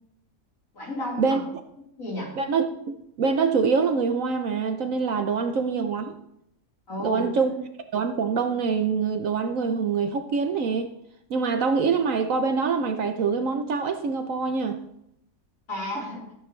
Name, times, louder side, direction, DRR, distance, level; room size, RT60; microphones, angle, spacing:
voice 1, 0.7-1.4 2.0-2.4 5.4-5.5 6.9-7.3 15.7-16.3, left 1 dB, 55° left, -5 dB, 4.5 m, -32 dB
voice 2, 2.4-6.2 7.0-7.5 7.9-10.9 11.3-14.8, right 5 dB, 60° right, 7 dB, 1.1 m, -25 dB
14.0 x 9.3 x 3.2 m, 0.76 s
omnidirectional pair, 1.7 m